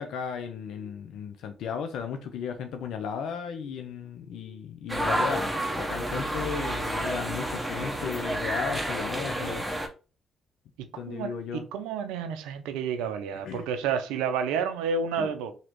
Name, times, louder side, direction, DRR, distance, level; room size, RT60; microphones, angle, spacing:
voice 1, 0.0-5.5 5.8-9.6 11.0-11.6 13.4-13.7 15.2-15.3, left 6 dB, 75° left, 0.4 m, -35 dB
sound 1, 4.9-9.9, right 1 dB, 10° right, 0.9 m, -30 dB
voice 2, 11.1-15.5, right 6 dB, 85° right, 0.5 m, -30 dB
2.9 x 2.7 x 2.9 m
supercardioid pair, 55°, 0 cm